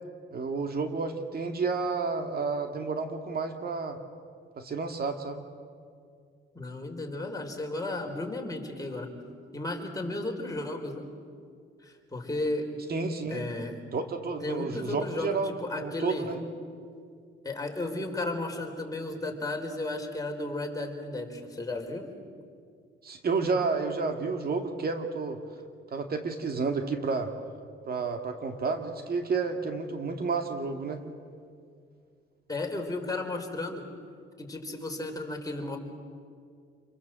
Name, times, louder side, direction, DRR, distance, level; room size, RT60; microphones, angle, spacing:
voice 1, 0.3-4.0 4.6-5.4 12.9-13.5 13.9-16.4 23.0-25.4 25.9-27.3 27.9-31.0, right 4 dB, 50° right, 5 dB, 2.2 m, -31 dB
voice 2, 6.5-9.2 9.5-11.0 11.8-12.7 13.3-13.8 14.4-16.3 17.4-22.0 32.5-33.8 34.4-35.8, left 2 dB, 20° left, 1 dB, 4.5 m, -34 dB
28.5 x 22.5 x 7.7 m, 2.2 s
cardioid pair, 90°, 20 cm